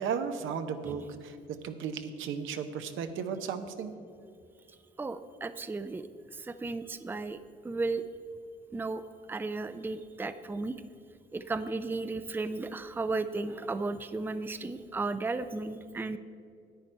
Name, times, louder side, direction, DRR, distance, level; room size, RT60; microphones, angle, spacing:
voice 1, 0.0-1.4 1.6-3.9, right 6 dB, 85° right, 8 dB, 0.8 m, -35 dB
voice 2, 5.0-6.1 6.3-7.4 7.6-8.0 8.7-9.0 9.3-10.8 11.3-16.2, right 3 dB, 10° right, 12 dB, 0.4 m, -34 dB
10.5 x 8.7 x 4.5 m, 2.4 s
cardioid pair, 90°, 20 cm